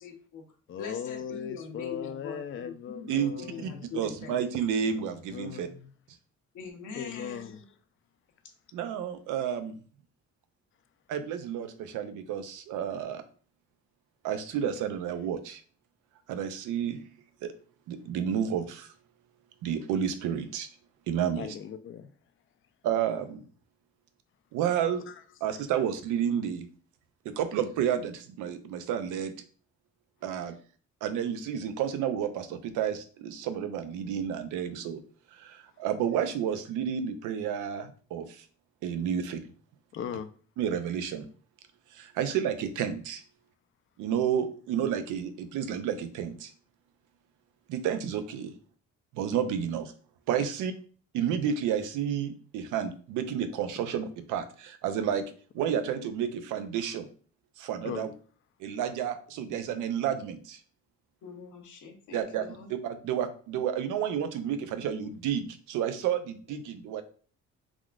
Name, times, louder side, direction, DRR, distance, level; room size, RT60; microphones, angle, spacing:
voice 1, 0.0-0.4 0.8-4.4 6.5-7.5 61.2-62.7, left 5 dB, 80° left, 0.9 m, -43 dB
voice 2, 0.7-3.9 4.9-5.9 6.9-7.6 21.4-22.1 25.1-25.2 25.5-25.6 35.7-35.8 39.9-40.3 53.8-53.9 57.8-58.1, left 8 dB, 45° left, 0.4 m, -39 dB
voice 3, 3.6-5.7 8.7-9.7 11.1-13.2 14.2-15.6 16.3-17.0 17.4-17.5 17.9-18.9 19.6-20.7 21.1-21.5 22.8-23.4 24.5-25.0 25.4-26.7 27.3-29.3 30.2-30.5 31.0-35.0 35.3-38.4 38.8-39.4 40.6-41.3 41.9-43.2 44.0-46.5 47.7-48.5 49.1-49.9 50.3-50.7 51.1-55.2 55.5-57.1 57.6-58.1 58.6-60.6 62.1-67.0, right 8 dB, 85° right, 0.5 m, -31 dB
3.5 x 2.4 x 2.3 m
cardioid pair, 90°, 30 cm